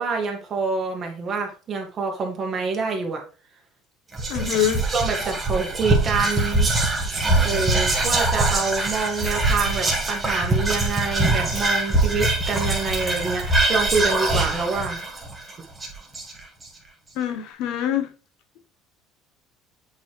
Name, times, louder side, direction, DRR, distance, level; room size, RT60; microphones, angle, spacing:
voice 1, 0.0-3.2 4.9-6.7 7.4-15.0, right 4 dB, 30° right, 1.7 m, -26 dB
Whispering, 4.1-16.6, right 2 dB, 15° right, 1.7 m, -23 dB
voice 2, 4.3-4.8 17.2-18.1, left 10 dB, 65° left, 1.0 m, -24 dB
8.2 x 4.5 x 3.3 m
cardioid pair, 150°, 0 cm